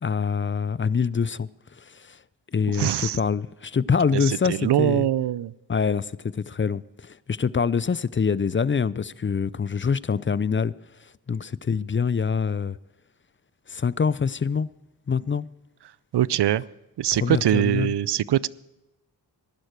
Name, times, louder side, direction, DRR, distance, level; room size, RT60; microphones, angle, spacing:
voice 1, 0.0-1.5 1.8-2.2 2.5-5.1 5.7-10.7 11.3-12.8 13.7-14.7 15.1-15.5 17.2-17.9, left 6 dB, 30° left, 0.5 m, -25 dB
voice 2, 2.7-3.2 4.1-5.5 16.1-16.6 17.0-18.5, right 12 dB, 70° right, 0.5 m, -23 dB
15.0 x 11.5 x 4.6 m
cardioid pair, 40°, 43 cm